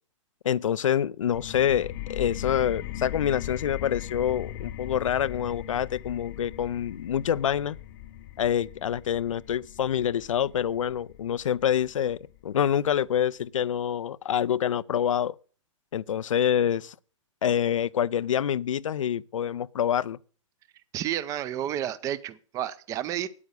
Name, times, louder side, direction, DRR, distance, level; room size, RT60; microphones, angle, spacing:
voice 1, 0.4-7.8 8.4-12.2 12.4-15.3 15.9-17.0 17.4-20.2, left 9 dB, 75° left, 0.5 m, -26 dB
sound 1, 1.3-12.7, left 13 dB, 40° left, 0.8 m, -39 dB
voice 2, 20.9-23.3, right 11 dB, 20° right, 0.6 m, -31 dB
9.4 x 8.6 x 6.4 m
hypercardioid pair, 135°, 16 cm